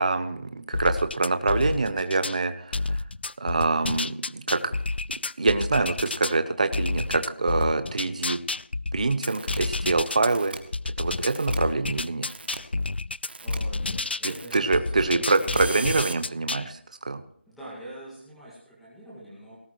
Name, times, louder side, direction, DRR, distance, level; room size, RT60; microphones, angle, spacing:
voice 1, 0.0-3.0 3.4-4.7 5.4-8.4 8.9-10.6 11.0-12.3 14.5-16.8 17.1-17.2, right 3 dB, 40° right, 10 dB, 0.9 m, -25 dB
sound 1, 0.7-2.4 2.7-6.3 6.7-10.3 10.7-14.4 14.7-16.7, left 3 dB, 65° left, 0.4 m, -30 dB
sound 2, 9.2-9.6 10.2-10.6 11.2-11.6 12.2-12.6 13.2-13.6 14.2-14.6 15.2-16.1, right 3 dB, 60° right, 1.6 m, -37 dB
voice 2, 13.4-15.6 17.4-19.6, right 1 dB, ahead, -8 dB, 2.1 m, -44 dB
18.5 x 12.5 x 3.1 m, 0.63 s
figure-of-eight pair, 180°, 6 cm